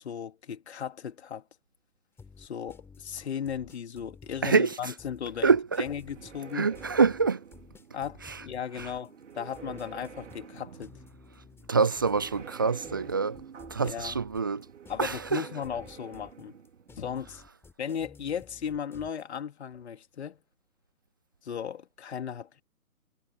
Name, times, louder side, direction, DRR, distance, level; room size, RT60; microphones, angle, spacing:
voice 1, 0.0-1.4 2.4-6.7 7.9-10.9 13.8-14.2 14.9-16.5 17.0-17.4 17.8-20.4 21.4-22.6, left 8 dB, 45° left, 3.1 m, -36 dB
sound 1, 2.2-19.2, left 4 dB, 5° left, 4.4 m, -53 dB
voice 2, 4.4-4.9 5.4-5.9 6.5-7.4 8.2-8.4 8.8-8.9 11.7-13.4 13.7-14.7 15.0-15.5, right 5 dB, 15° right, 0.6 m, -26 dB
sound 2, 5.6-17.4, right 7 dB, 50° right, 4.2 m, -49 dB
figure-of-eight pair, 140°, 44 cm